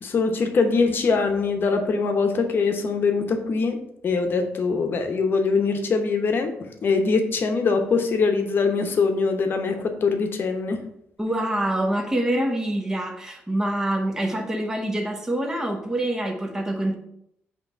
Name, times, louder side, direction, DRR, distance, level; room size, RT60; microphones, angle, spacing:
voice 1, 0.0-3.8 4.0-6.5 6.8-10.8, left 4 dB, 50° left, 6 dB, 0.9 m, -22 dB
voice 2, 11.2-16.9, right 1 dB, 10° right, 2 dB, 0.9 m, -25 dB
5.8 x 3.0 x 5.5 m, 0.75 s
cardioid pair, 115°, 5 cm